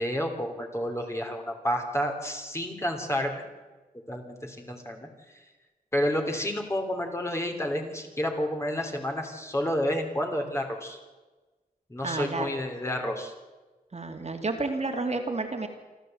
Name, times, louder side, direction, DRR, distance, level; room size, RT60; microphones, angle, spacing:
voice 1, 0.0-3.4 4.1-5.1 5.9-11.0 11.9-13.3, equal, 15° left, 3 dB, 3.2 m, -30 dB
voice 2, 12.0-12.5 13.9-15.7, right 3 dB, 45° right, 3 dB, 2.7 m, -30 dB
27.0 x 13.0 x 7.9 m, 1.2 s
wide cardioid pair, 105°, 16 cm